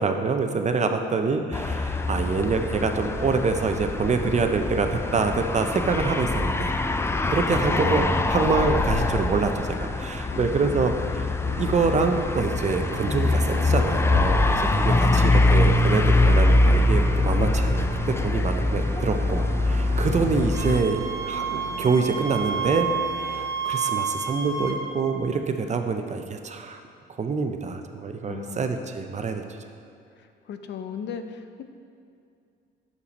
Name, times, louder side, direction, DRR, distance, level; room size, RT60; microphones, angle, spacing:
voice 1, 0.0-6.7 7.3-22.9 23.2-26.8 27.2-29.4, right 4 dB, 35° right, 6 dB, 0.6 m, -26 dB
voice 2, 0.8-1.3 10.3-10.9 14.6-15.3 28.3-28.8 30.2-31.6, left 7 dB, 65° left, 8 dB, 0.5 m, -38 dB
sound 1, 1.5-20.8, left 2 dB, 15° left, 0.3 m, -23 dB
sound 2, 11.4-23.5, right 7 dB, 85° right, 0.5 m, -39 dB
Wind instrument woodwind instrument, 20.5-24.8, right 5 dB, 15° right, 0.9 m, -30 dB
6.7 x 5.7 x 4.1 m, 2.5 s
cardioid pair, 90°, 20 cm